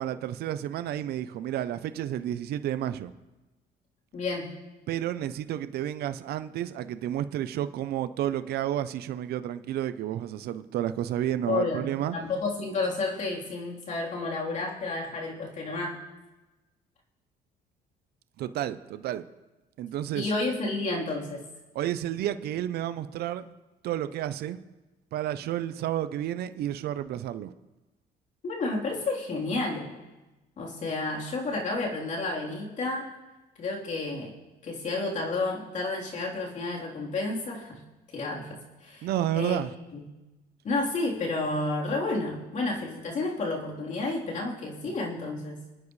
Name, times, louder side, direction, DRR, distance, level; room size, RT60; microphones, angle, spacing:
voice 1, 0.0-3.1 4.9-12.2 18.4-19.2 19.8-20.3 21.7-23.5 23.8-24.6 25.1-27.5 39.0-39.7, right 11 dB, 70° right, 12 dB, 0.7 m, -31 dB
voice 2, 4.1-4.5 11.5-11.8 12.1-16.0 20.1-21.4 28.4-29.9 30.6-33.1 33.6-34.3 34.6-37.8 38.1-39.1 39.3-39.6 39.9-40.0 40.6-45.6, left 3 dB, 50° left, -3 dB, 3.8 m, -31 dB
29.0 x 9.6 x 3.3 m, 1.1 s
cardioid pair, 110°, 17 cm